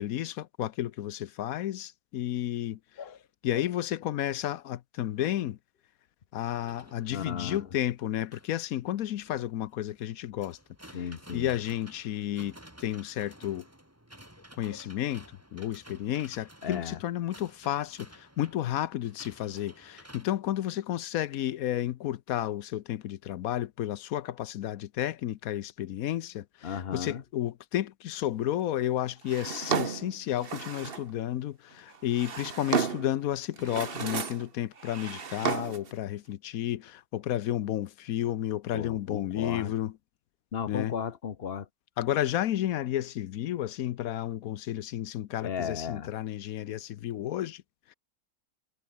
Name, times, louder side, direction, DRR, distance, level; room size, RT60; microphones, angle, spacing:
voice 1, 0.0-2.8 3.4-5.6 6.3-10.6 11.3-13.6 14.6-15.3 15.5-39.9 40.7-40.9 42.0-47.6, left 12 dB, 65° left, 1.1 m, -32 dB
sound 1, 6.5-20.3, right 1 dB, 10° right, 3.8 m, -53 dB
voice 2, 7.1-7.6 10.9-11.5 14.7-14.8 16.6-17.0 26.6-27.2 38.7-39.7 40.5-41.7 45.4-46.1, left 7 dB, 45° left, 1.0 m, -35 dB
Drawer open or close, 29.3-31.1 31.9-33.2 33.6-34.5 34.8-35.9, right 6 dB, 40° right, 1.3 m, -33 dB
omnidirectional pair, 1.7 m